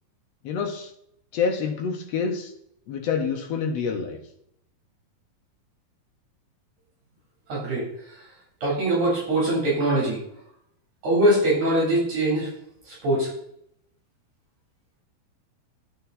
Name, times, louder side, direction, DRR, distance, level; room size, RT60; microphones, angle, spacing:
voice 1, 0.4-0.9 1.3-2.5 2.9-4.2, left 5 dB, 80° left, 4 dB, 1.5 m, -27 dB
voice 2, 7.5-7.8 8.6-10.2 11.0-12.5 12.9-13.3, right 1 dB, 55° right, -5 dB, 4.9 m, -22 dB
10.0 x 7.1 x 4.1 m, 0.73 s
omnidirectional pair, 4.2 m